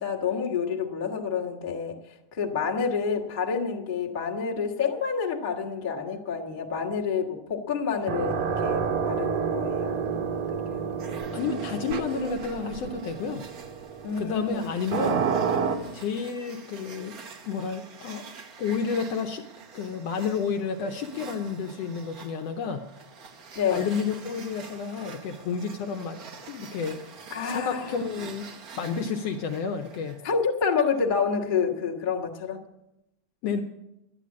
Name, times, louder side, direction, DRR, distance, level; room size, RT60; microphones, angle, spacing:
voice 1, 0.0-2.0 2.3-10.4 10.7-11.3 14.0-14.7 23.5-23.9 27.3-28.0 30.2-32.6, left 6 dB, 30° left, -1 dB, 0.8 m, -28 dB
sound 1, 8.0-15.8, right 6 dB, 65° right, 1.5 m, -29 dB
sound 2, 11.0-30.3, right 5 dB, 85° right, 0.8 m, -47 dB
voice 2, 11.3-13.4 14.2-15.3 15.9-18.2 18.6-19.4 19.7-22.8 23.7-26.2 26.5-27.1 27.4-28.5 28.8-30.2 33.4-33.6, left 5 dB, 70° left, 4 dB, 1.6 m, -30 dB
11.5 x 10.0 x 8.5 m, 0.90 s
omnidirectional pair, 3.5 m